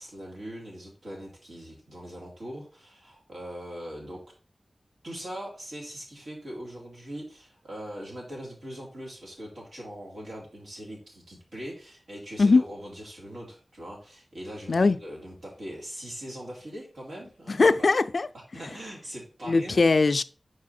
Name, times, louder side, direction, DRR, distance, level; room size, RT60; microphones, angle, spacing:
voice 1, 0.0-4.2 5.0-17.9 18.5-19.8, equal, 90° right, 2.7 m, -41 dB
voice 2, 17.5-18.3 19.5-20.2, left 3 dB, 65° left, 0.3 m, -20 dB
4.8 x 4.7 x 4.2 m
wide cardioid pair, 70°, 0 cm